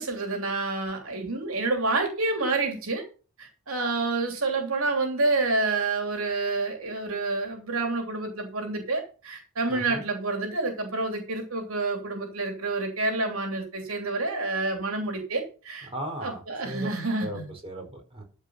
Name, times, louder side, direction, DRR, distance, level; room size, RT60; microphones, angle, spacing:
voice 1, 0.0-3.0 3.4-15.9 16.2-17.5, right 3 dB, 85° right, 3 dB, 3.0 m, -28 dB
voice 2, 9.7-10.0 15.9-16.9 17.2-18.2, right 1 dB, 25° right, 1 dB, 4.8 m, -37 dB
13.5 x 5.5 x 5.6 m, 0.36 s
head